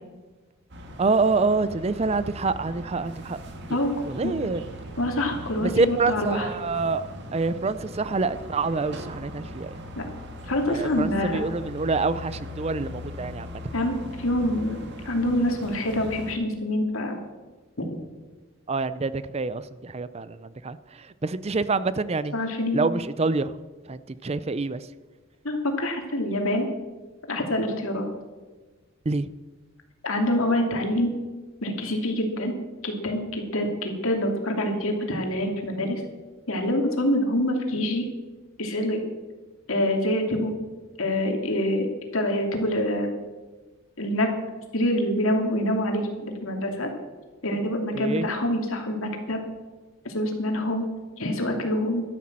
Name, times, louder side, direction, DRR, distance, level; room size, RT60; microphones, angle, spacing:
sound 1, 0.7-16.3, left 1 dB, 50° right, 2.1 m, -40 dB
voice 1, 1.0-3.4 4.0-4.6 5.6-9.8 10.7-13.6 18.7-22.3 22.7-23.6 23.9-24.9 29.1-29.3 48.0-48.3, right 3 dB, 30° right, 15 dB, 0.5 m, -26 dB
voice 2, 5.0-6.5 9.9-10.1 10.4-11.4 13.7-17.2 17.8-17.9 22.3-22.8 25.4-26.7 27.3-28.1 30.0-31.1 31.6-32.5 32.8-36.0 36.5-38.0 38.6-39.0 39.7-40.5 41.0-41.9 42.1-43.1 44.0-44.3 44.7-46.9 47.4-49.4 50.1-50.8 51.2-52.0, left 1 dB, 70° left, 3 dB, 2.8 m, -26 dB
12.5 x 12.5 x 7.5 m, 1.3 s
head